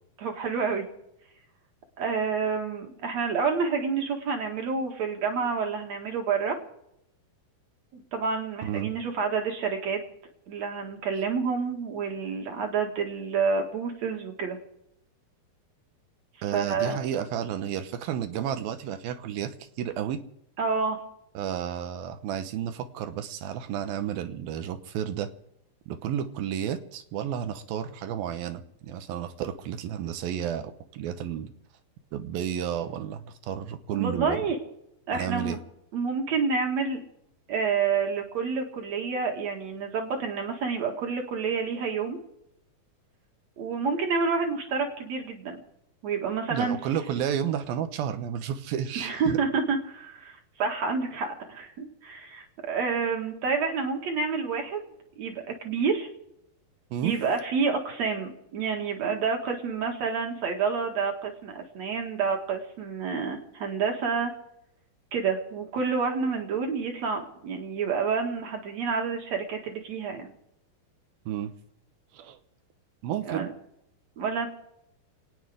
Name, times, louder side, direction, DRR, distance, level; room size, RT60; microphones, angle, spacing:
voice 1, 0.2-0.8 2.0-6.6 7.9-10.0 10.5-14.6 16.5-17.0 20.6-21.0 33.9-34.6 35.1-35.6 35.9-37.0 37.5-42.2 43.6-45.6 46.0-46.8 49.0-54.9 55.2-56.1 57.0-64.3 65.1-70.3 73.3-73.5 74.2-74.5, right 5 dB, 55° right, 3 dB, 2.7 m, -28 dB
voice 2, 8.6-9.0 16.4-20.2 21.3-25.3 25.9-31.5 32.1-34.4 35.1-35.6 46.5-49.4 56.9-57.1 71.3-71.5 72.1-72.4 73.0-73.5, right 9 dB, 85° right, 10 dB, 2.8 m, -32 dB
28.0 x 9.5 x 5.1 m, 0.82 s
omnidirectional pair, 4.2 m